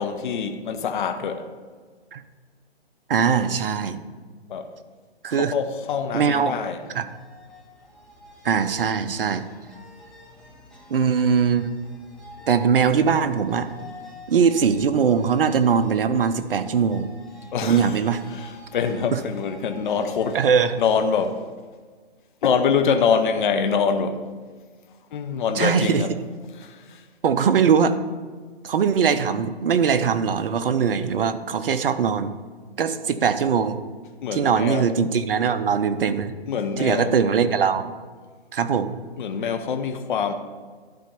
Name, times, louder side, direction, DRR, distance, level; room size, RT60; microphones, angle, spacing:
voice 1, 0.0-1.5 4.5-4.7 5.4-6.8 13.0-13.1 17.5-18.0 18.3-20.4 20.8-21.4 22.4-24.2 25.1-26.1 26.6-27.0 34.2-34.9 36.5-37.2 39.2-40.3, left 6 dB, 50° left, 0.8 m, -24 dB
voice 2, 3.1-4.0 5.2-5.5 6.1-6.5 6.9-7.0 8.4-9.5 10.9-11.8 12.5-13.7 14.3-17.1 17.6-18.2 19.1-19.2 20.3-20.7 25.6-26.0 27.2-28.0 28.6-32.3 32.8-33.8 34.3-36.3 36.8-37.9 38.5-38.9, right 6 dB, 60° right, 0.8 m, -21 dB
sound 1, 6.7-21.3, left 1 dB, ahead, 1.5 m, -48 dB
11.5 x 4.3 x 6.8 m
hypercardioid pair, 140°, 32 cm